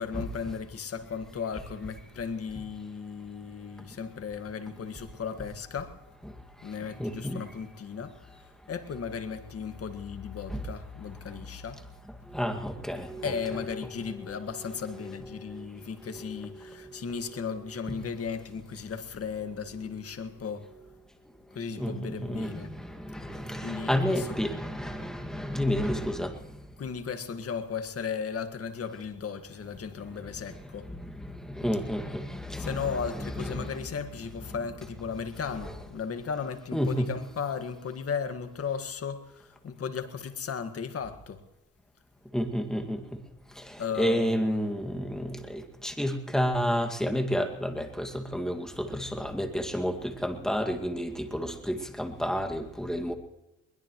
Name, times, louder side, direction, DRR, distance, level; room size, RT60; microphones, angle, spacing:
voice 1, 0.0-6.0 6.6-8.2 8.7-11.8 13.2-20.7 21.5-22.7 23.6-24.4 26.8-30.9 32.5-41.4 43.8-44.6, left 6 dB, 50° left, 1.9 m, -36 dB
voice 2, 7.0-7.4 10.5-10.6 12.3-13.5 14.3-14.4 15.5-15.6 16.1-16.3 21.8-26.3 31.0-31.1 31.5-33.7 36.7-37.1 42.3-43.0 44.0-53.1, equal, ahead, 2.1 m, -30 dB
22.0 x 21.0 x 3.1 m
cardioid pair, 90°, 30 cm